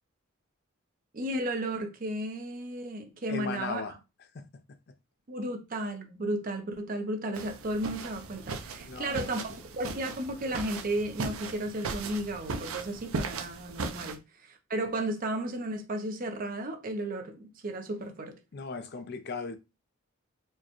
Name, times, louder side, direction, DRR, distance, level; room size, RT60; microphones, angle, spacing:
voice 1, 1.1-3.8 5.3-18.4, right 1 dB, 40° right, 0.6 m, -34 dB
voice 2, 3.3-4.0 4.3-4.5 8.8-9.2 18.5-19.6, left 4 dB, 50° left, 0.5 m, -37 dB
sound 1, 7.3-14.2, right 4 dB, 85° right, 0.5 m, -38 dB
4.5 x 2.2 x 2.9 m
head